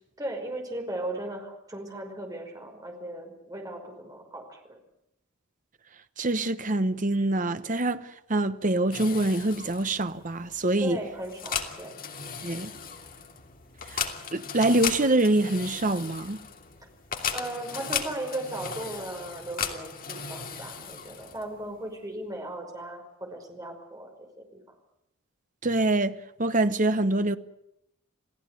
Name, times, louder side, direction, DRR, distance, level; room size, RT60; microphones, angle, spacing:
voice 1, 0.2-4.8 10.8-12.0 17.3-24.1 24.4-24.6, right 1 dB, 15° right, 5.4 m, -37 dB
voice 2, 6.2-11.0 12.4-12.7 13.9-14.0 14.3-16.4 25.6-27.4, right 2 dB, 35° right, 1.1 m, -25 dB
sound 1, 8.9-21.6, left 6 dB, 40° left, 2.8 m, -36 dB
29.0 x 17.0 x 9.3 m
head